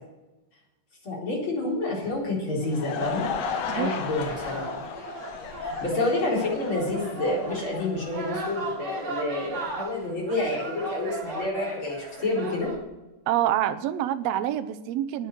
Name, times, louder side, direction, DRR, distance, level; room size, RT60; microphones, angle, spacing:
voice 1, 1.0-3.2 3.7-4.8 5.6-12.7, left 2 dB, 40° left, -4 dB, 5.0 m, -29 dB
Laughter / Crowd, 2.4-8.7, left 6 dB, 65° left, 2.1 m, -35 dB
sound 1, 3.0-12.8, right 2 dB, 45° right, 3.2 m, -37 dB
voice 2, 3.7-4.2 13.3-15.3, right 11 dB, 75° right, 10 dB, 1.6 m, -27 dB
10.0 x 9.3 x 8.0 m, 1.0 s
omnidirectional pair, 3.6 m